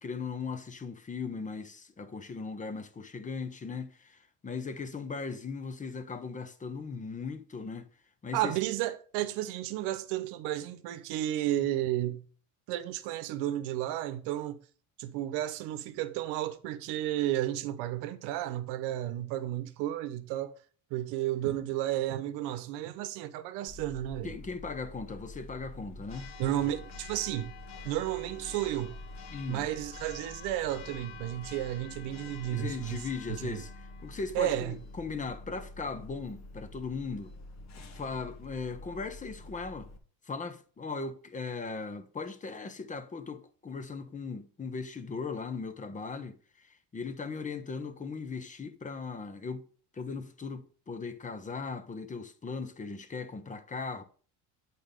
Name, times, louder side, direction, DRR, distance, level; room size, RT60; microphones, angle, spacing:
voice 1, 0.0-7.9 8.2-8.6 24.2-26.3 29.3-29.7 32.4-33.7 34.0-37.3 37.8-39.9 40.2-49.6 49.9-54.0, left 4 dB, 20° left, 0.8 m, -38 dB
voice 2, 8.3-12.2 12.7-14.6 15.0-20.5 20.9-24.3 26.4-27.5 27.8-29.0 29.5-33.0 33.3-33.6 34.3-34.8, right 13 dB, 80° right, 0.9 m, -32 dB
Church bell, 23.7-40.0, left 2 dB, 45° left, 1.3 m, -46 dB
8.5 x 4.2 x 5.2 m
cardioid pair, 115°, 40 cm